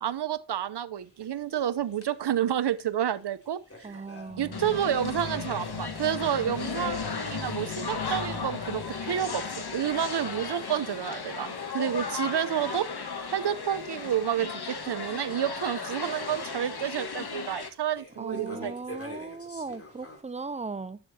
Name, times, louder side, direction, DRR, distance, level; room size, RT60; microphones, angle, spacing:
voice 1, 0.0-4.0 4.4-12.9 13.3-18.7, right 10 dB, 65° right, 0.8 m, -30 dB
sound 1, 1.0-20.2, left 1 dB, 30° left, 3.1 m, -50 dB
voice 2, 3.8-4.8 18.2-21.0, right 4 dB, 15° right, 0.5 m, -38 dB
sound 2, 4.3-11.0, left 5 dB, 75° left, 1.7 m, -39 dB
sound 3, 4.5-17.7, left 4 dB, 60° left, 1.7 m, -36 dB
11.5 x 7.1 x 2.8 m
cardioid pair, 50°, 44 cm